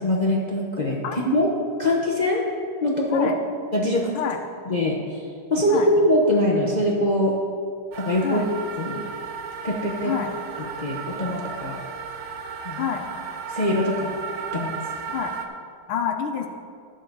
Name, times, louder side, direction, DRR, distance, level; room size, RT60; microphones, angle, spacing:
voice 1, 0.0-1.5 1.8-2.4 2.8-3.3 3.7-4.1 4.7-5.0 5.5-7.4 7.9-8.4 8.8-9.0 9.6-10.1 10.8-11.8 12.6-12.9 13.5-14.2 14.5-14.8, left 1 dB, 45° left, -2 dB, 0.5 m, -22 dB
sound 1, 7.9-15.5, right 5 dB, 70° right, 1.4 m, -34 dB
voice 2, 15.9-16.5, left 8 dB, 80° left, 3 dB, 1.6 m, -27 dB
11.5 x 8.0 x 4.7 m, 2.1 s
omnidirectional pair, 2.3 m